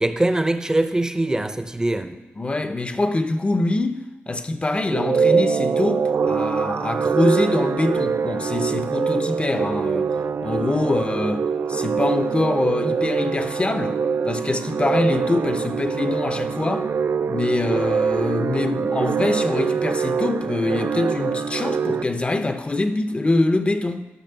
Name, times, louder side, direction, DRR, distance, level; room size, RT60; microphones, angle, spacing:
voice 1, 0.0-2.2, right 1 dB, 15° right, 0.6 m, -22 dB
voice 2, 2.4-10.1 10.4-11.4 11.7-16.9 17.3-24.1, left 2 dB, 25° left, 0.6 m, -24 dB
sound 1, 4.9-22.0, right 6 dB, 65° right, 0.4 m, -24 dB
12.5 x 6.1 x 6.7 m
wide cardioid pair, 145°, 5 cm